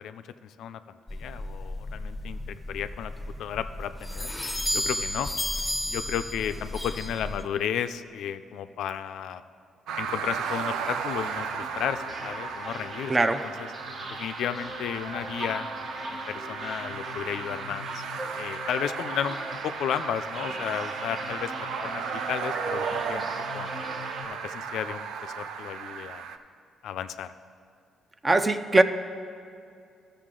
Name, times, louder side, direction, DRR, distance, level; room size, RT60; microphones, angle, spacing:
voice 1, 0.0-3.1 3.4-4.3 4.7-5.3 5.9-9.4 10.0-13.1 13.4-13.7 14.1-15.7 16.1-18.0 18.4-19.4 19.6-23.7 24.2-26.3 26.8-27.3, left 9 dB, 80° left, 11 dB, 0.3 m, -33 dB
sound 1, 1.1-7.5, left 1 dB, 5° left, 0.9 m, -33 dB
sound 2, 9.9-26.4, right 7 dB, 85° right, 0.4 m, -35 dB
sound 3, 10.4-24.3, equal, 40° right, 1.3 m, -39 dB
voice 2, 13.1-13.4 28.2-28.8, right 2 dB, 25° right, 10 dB, 0.5 m, -21 dB
13.5 x 6.7 x 3.7 m, 2.4 s
cardioid pair, 90°, 0 cm